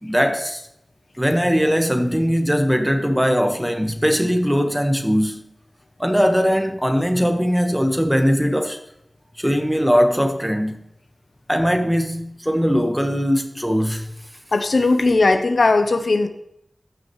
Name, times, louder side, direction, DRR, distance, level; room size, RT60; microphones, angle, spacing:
voice 1, 0.0-0.6 1.2-5.5 6.0-8.8 9.4-10.8 11.5-14.1, equal, 5° right, 1.4 m, -20 dB
voice 2, 14.5-16.3, left 3 dB, 80° left, 0.8 m, -17 dB
15.0 x 5.9 x 3.2 m
wide cardioid pair, 65°, 0 cm